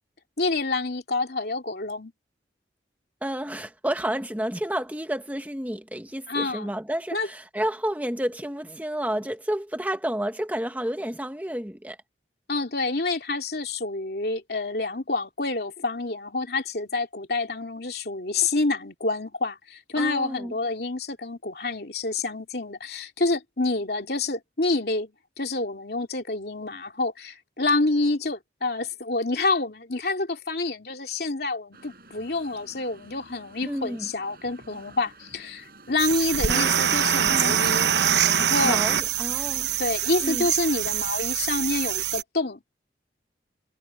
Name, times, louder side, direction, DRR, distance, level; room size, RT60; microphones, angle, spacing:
voice 1, 0.4-2.1 6.3-6.7 7.1-7.3 12.5-37.9 38.3-38.8 39.8-42.6, left 3 dB, 65° left, 2.8 m, -28 dB
voice 2, 3.2-12.0 20.0-20.5 33.6-34.1 36.5-36.7 37.3-37.6 38.6-39.7 40.2-40.5, right 1 dB, 10° right, 1.2 m, -30 dB
sound 1, 31.7-39.9, right 2 dB, 55° right, 7.6 m, -50 dB
sound 2, 36.0-42.2, right 9 dB, 75° right, 0.8 m, -24 dB
head